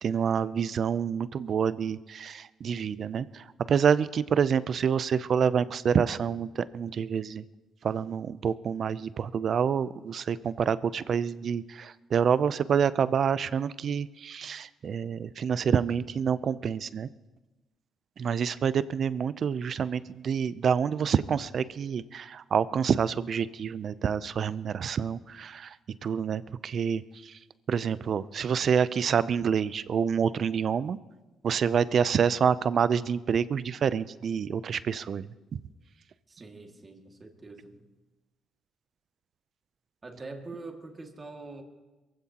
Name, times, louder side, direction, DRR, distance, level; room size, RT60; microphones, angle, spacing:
voice 1, 0.0-7.4 7.8-17.1 18.2-25.8 26.0-27.4 27.7-31.0 31.4-35.3, right 7 dB, 55° right, 16 dB, 0.5 m, -27 dB
voice 2, 36.3-37.8 40.0-41.6, right 3 dB, 30° right, 3 dB, 2.1 m, -44 dB
22.5 x 15.5 x 2.9 m, 1.1 s
cardioid pair, 90°, 0 cm